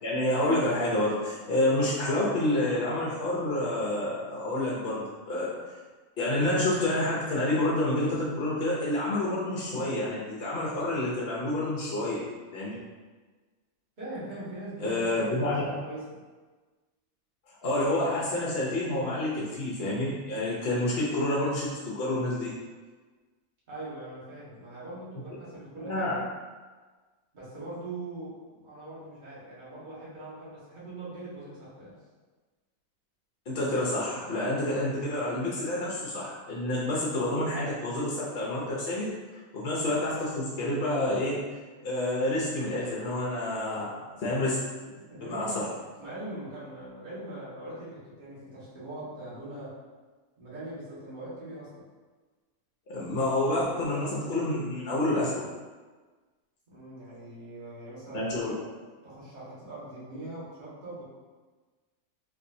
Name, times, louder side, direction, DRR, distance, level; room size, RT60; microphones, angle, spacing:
voice 1, 0.0-5.7 6.2-12.2 12.5-12.7 14.8-15.6 17.6-22.5 25.8-26.1 33.5-41.4 41.8-44.6 45.2-45.7 52.9-55.4 58.1-58.5, left 1 dB, 55° left, -6 dB, 0.7 m, -28 dB
voice 2, 14.0-16.0 23.7-26.1 27.3-32.0 45.1-49.8 50.4-51.7 56.7-58.6 59.0-61.0, right 2 dB, 35° right, -9 dB, 1.3 m, -41 dB
4.2 x 2.6 x 2.6 m, 1.4 s
omnidirectional pair, 1.6 m